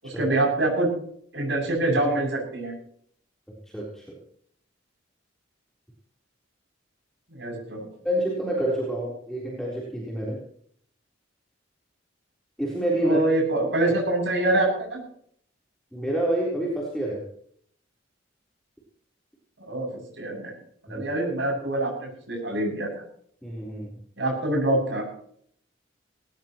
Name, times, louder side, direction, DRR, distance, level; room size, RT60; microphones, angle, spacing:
voice 1, 0.0-0.9 1.3-2.7 7.3-7.8 13.0-15.0 19.6-19.9 20.2-20.5 20.9-22.9 24.2-25.0, right 2 dB, 65° right, 0 dB, 7.7 m, -25 dB
voice 2, 3.7-4.0 8.0-10.4 12.6-13.2 15.9-17.2 20.9-21.0 23.4-23.9, right 1 dB, ahead, -5 dB, 4.0 m, -27 dB
20.0 x 18.0 x 3.1 m, 0.62 s
head